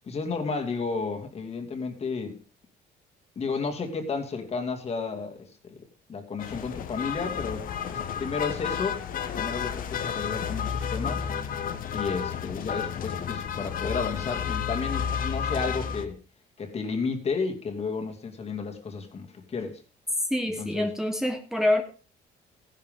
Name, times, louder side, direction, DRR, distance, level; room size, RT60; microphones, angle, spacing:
voice 1, 0.0-2.4 3.4-9.0 9.3-11.3 11.9-16.2 16.6-19.8 20.6-20.9, left 4 dB, 40° left, 2.4 m, -32 dB
sound 1, 6.4-16.1, left 7 dB, 55° left, 1.3 m, -31 dB
voice 2, 20.3-21.8, left 1 dB, 5° right, 1.3 m, -26 dB
15.0 x 11.0 x 3.7 m
cardioid pair, 110°, 17 cm